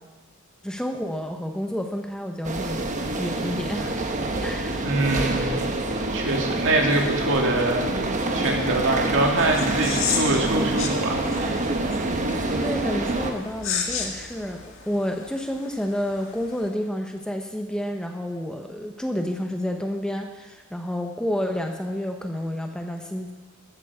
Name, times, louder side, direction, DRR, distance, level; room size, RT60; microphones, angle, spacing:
voice 1, 0.6-2.8 3.2-4.0 4.4-4.9 12.6-23.3, equal, 5° left, 4 dB, 0.7 m, -30 dB
sound 1, 2.4-13.3, right 2 dB, 35° right, 1.1 m, -26 dB
voice 2, 4.8-5.6 6.1-7.9 8.3-11.5, right 2 dB, 60° right, 0 dB, 2.4 m, -24 dB
sound 2, 9.2-16.7, left 6 dB, 60° left, 1.7 m, -34 dB
14.0 x 14.0 x 4.8 m, 1.3 s
head